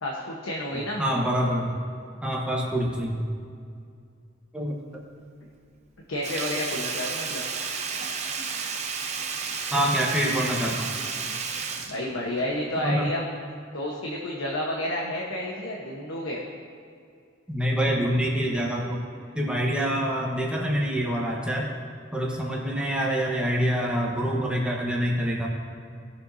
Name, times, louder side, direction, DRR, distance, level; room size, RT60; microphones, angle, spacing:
voice 1, 0.0-1.0 6.1-7.4 11.9-13.2 13.7-16.4, left 1 dB, 80° left, -2 dB, 1.2 m, -30 dB
voice 2, 1.0-1.8 2.2-3.3 4.5-5.0 9.7-10.9 12.8-13.1 17.5-19.0 19.3-21.7 22.1-25.5, equal, 5° right, -3 dB, 1.2 m, -26 dB
Sink (filling or washing), 6.2-12.8 13.1-13.2, right 5 dB, 35° right, 0.7 m, -32 dB
18.0 x 6.8 x 2.7 m, 2.3 s
head